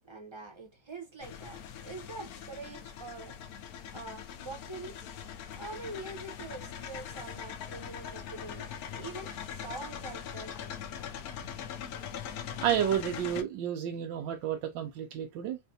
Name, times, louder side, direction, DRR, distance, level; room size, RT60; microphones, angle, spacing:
voice 1, 0.0-3.4 3.9-4.9 5.6-10.8 11.4-11.5, right 3 dB, 25° right, 0.6 m, -44 dB
sound 1, 1.2-13.4, left 8 dB, 65° left, 1.0 m, -42 dB
voice 2, 12.6-15.6, right 10 dB, 85° right, 1.4 m, -31 dB
5.1 x 2.3 x 2.7 m
omnidirectional pair, 2.0 m